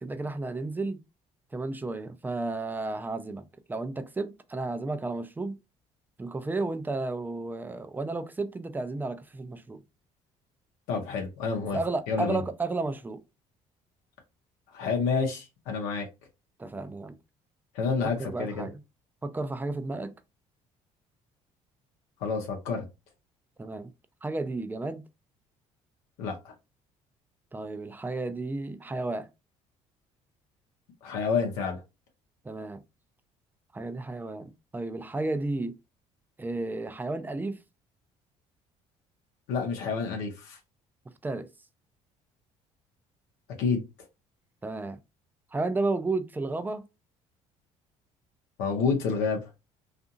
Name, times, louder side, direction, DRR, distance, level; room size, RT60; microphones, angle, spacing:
voice 1, 0.0-1.0 1.5-5.6 6.2-9.8 11.7-13.2 16.6-17.2 18.2-18.8 19.2-20.1 23.6-23.9 24.2-25.0 27.5-29.3 32.4-32.8 33.7-35.8 36.4-37.6 41.2-41.5 44.6-45.0 45.5-46.9, right 2 dB, 15° right, 0.4 m, -32 dB
voice 2, 10.9-11.8 12.1-12.4 14.7-16.1 17.7-18.7 22.2-22.8 26.2-26.5 31.0-31.8 39.5-40.6 43.6-43.8 48.6-49.5, left 5 dB, 90° left, 0.7 m, -29 dB
2.7 x 2.4 x 2.5 m
supercardioid pair, 80°, 14 cm